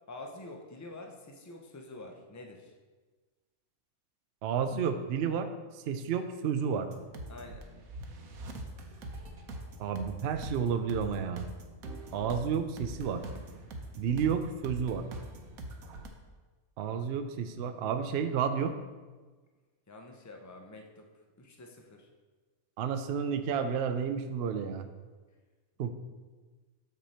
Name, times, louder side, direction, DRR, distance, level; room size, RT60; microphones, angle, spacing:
voice 1, 0.1-2.7 7.3-7.7 19.9-21.1 21.4-22.1, left 2 dB, 20° left, 2 dB, 0.4 m, -47 dB
voice 2, 4.4-5.5 5.9-6.9 9.8-11.4 12.1-13.2 14.0-15.1 16.8-18.8 22.8-24.9 25.8-25.9, right 7 dB, 60° right, 8 dB, 0.6 m, -31 dB
sound 1, 6.9-16.1, right 1 dB, 80° right, 1.3 m, -43 dB
6.8 x 6.1 x 4.2 m, 1.3 s
omnidirectional pair, 1.5 m